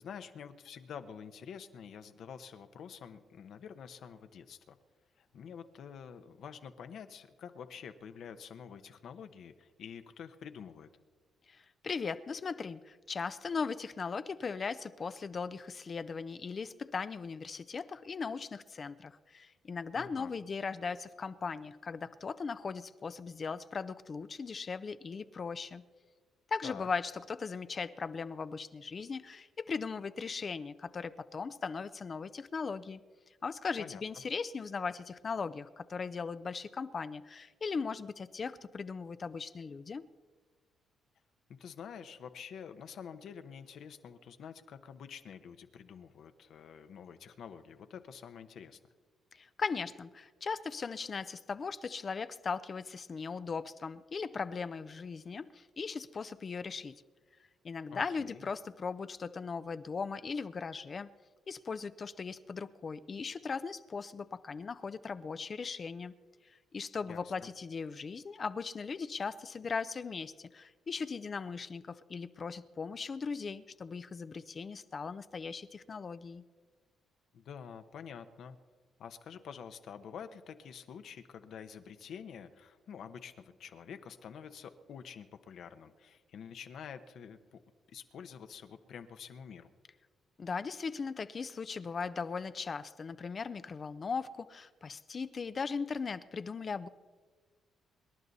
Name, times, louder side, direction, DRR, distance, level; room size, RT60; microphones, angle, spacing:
voice 1, 0.0-4.8 5.2-10.9 19.9-20.3 26.6-26.9 33.8-34.0 41.6-48.8 57.9-58.4 67.0-67.5 77.3-78.6 79.0-87.6 87.9-89.7, left 7 dB, 70° left, 9 dB, 1.0 m, -48 dB
voice 2, 11.5-25.8 26.5-33.0 33.4-40.0 49.3-56.9 57.6-61.1 61.5-66.1 66.7-76.4 90.4-96.9, left 5 dB, 40° left, 13 dB, 0.5 m, -38 dB
25.5 x 11.0 x 4.1 m, 1.5 s
cardioid pair, 90°, 0 cm